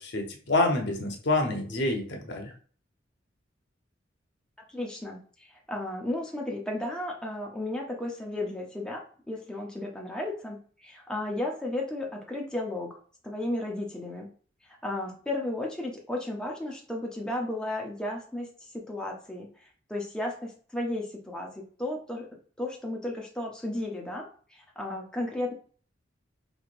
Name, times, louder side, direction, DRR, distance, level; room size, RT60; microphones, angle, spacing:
voice 1, 0.0-2.5, left 2 dB, 65° left, 2 dB, 0.9 m, -27 dB
voice 2, 4.7-13.0 13.2-14.3 14.8-18.5 18.9-22.3 22.6-25.5, left 1 dB, 5° left, -1 dB, 0.6 m, -34 dB
4.8 x 3.2 x 2.5 m, 0.42 s
head